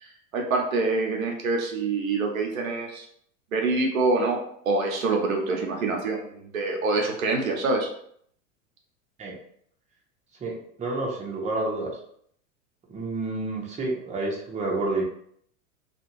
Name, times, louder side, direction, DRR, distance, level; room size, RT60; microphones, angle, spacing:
voice 1, 0.0-3.0 3.5-7.9, right 3 dB, 80° right, 1 dB, 0.8 m, -26 dB
voice 2, 10.4-11.9 12.9-15.0, right 2 dB, 15° right, -2 dB, 0.8 m, -29 dB
2.4 x 2.4 x 3.0 m, 0.65 s
hypercardioid pair, 90°, 41 cm